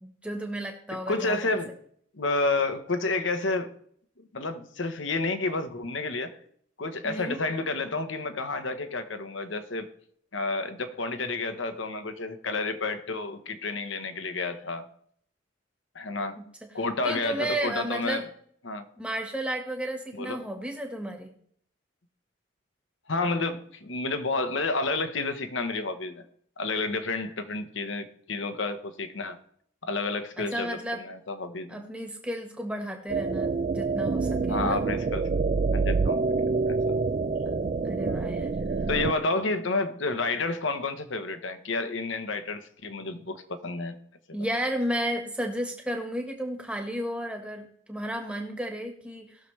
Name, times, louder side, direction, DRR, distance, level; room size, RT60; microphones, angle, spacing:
voice 1, 0.0-1.6 7.0-7.4 16.4-16.5 17.0-18.2 19.0-21.3 30.4-31.0 31.7-34.8 37.8-38.5 44.3-49.4, right 1 dB, 5° right, 2 dB, 1.4 m, -33 dB
voice 2, 1.1-1.7 2.1-3.7 4.3-6.4 6.8-9.9 10.3-14.9 15.9-16.4 16.7-18.2 18.6-18.9 20.1-20.4 23.1-26.2 26.6-29.4 29.8-31.8 34.5-35.2 35.7-36.2 36.7-36.9 38.9-44.0, left 3 dB, 70° left, 8 dB, 1.1 m, -30 dB
sound 1, 33.1-39.1, right 4 dB, 35° right, 0.3 m, -27 dB
19.0 x 6.7 x 3.3 m, 0.64 s
head